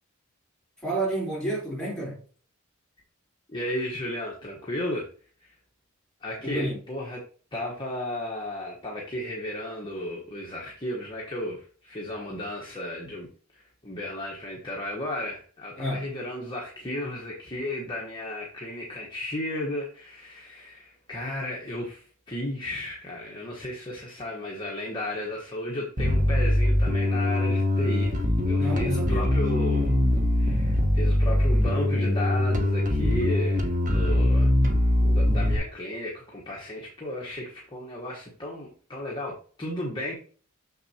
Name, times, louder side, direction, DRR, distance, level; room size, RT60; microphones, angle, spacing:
voice 1, 0.8-2.2 6.4-6.8 15.8-16.1 28.6-29.3 34.1-34.3, right 1 dB, 5° left, 3.8 m, -30 dB
voice 2, 3.5-5.1 5.4-5.6 6.2-7.2 7.5-13.3 13.5-28.2 28.4-29.9 30.3-34.5 35.0-40.2, left 1 dB, 20° left, 1.2 m, -34 dB
Bass guitar, 26.0-35.6, left 1 dB, 40° right, 1.2 m, -22 dB
6.6 x 6.6 x 2.9 m
head